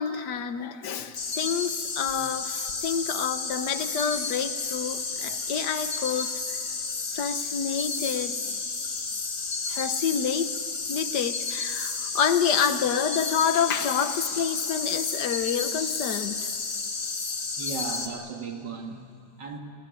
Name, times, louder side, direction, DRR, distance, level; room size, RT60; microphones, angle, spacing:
voice 1, 0.0-6.3 7.1-8.6 9.7-10.5 10.9-16.5, left 7 dB, 75° left, 10 dB, 1.6 m, -28 dB
sound 1, 1.2-18.1, left 4 dB, 50° left, 2.1 m, -32 dB
voice 2, 17.6-19.6, right 4 dB, 85° right, 3 dB, 2.9 m, -36 dB
26.5 x 18.5 x 9.6 m, 2.3 s
omnidirectional pair, 1.8 m